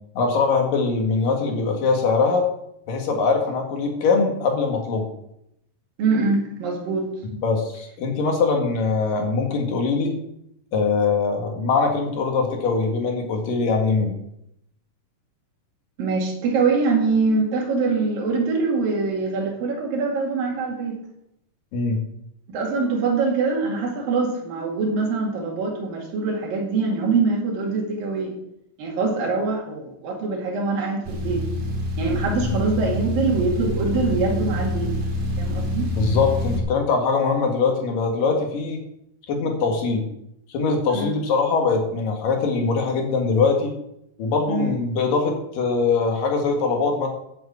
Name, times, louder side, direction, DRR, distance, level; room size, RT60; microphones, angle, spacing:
voice 1, 0.2-2.5 2.9-5.1 7.4-10.1 10.7-14.1 21.7-22.0 32.4-32.6 36.0-38.8 39.3-40.1 40.5-43.7 44.2-47.1, left 4 dB, 80° left, 2 dB, 3.7 m, -22 dB
voice 2, 6.0-7.1 16.0-21.0 22.5-28.3 28.8-31.4 32.0-34.9 35.4-35.9 40.9-41.1 44.5-44.7, right 4 dB, 85° right, -1 dB, 4.0 m, -23 dB
sound 1, 31.0-36.6, left 1 dB, 60° right, 3.7 m, -26 dB
10.0 x 8.3 x 7.2 m, 0.78 s
omnidirectional pair, 3.9 m